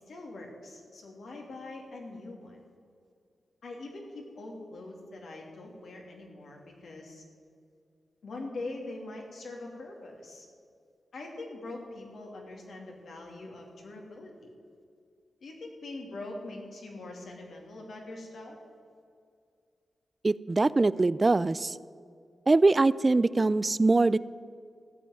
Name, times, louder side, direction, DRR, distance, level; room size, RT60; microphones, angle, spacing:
voice 1, 0.1-2.6 3.6-7.2 8.2-10.5 11.1-14.5 15.4-18.6, left 2 dB, 75° left, 0 dB, 2.8 m, -43 dB
voice 2, 20.2-21.8 22.5-24.2, right 3 dB, 35° right, 18 dB, 0.4 m, -23 dB
15.5 x 6.1 x 9.6 m, 2.3 s
cardioid pair, 55°, 0 cm